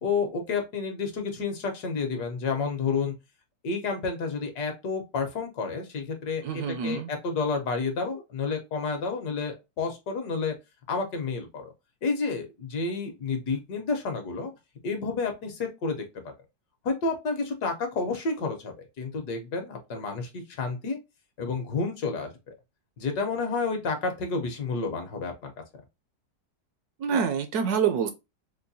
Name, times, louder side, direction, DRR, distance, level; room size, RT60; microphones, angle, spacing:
voice 1, 0.0-3.1 3.6-10.6 10.9-11.7 12.0-14.5 14.8-16.0 16.8-21.0 21.4-22.5 23.0-25.5, left 4 dB, 70° left, 1.4 m, -30 dB
voice 2, 6.4-7.1 27.0-28.1, right 7 dB, 70° right, 1.0 m, -26 dB
4.5 x 2.2 x 2.6 m
omnidirectional pair, 1.9 m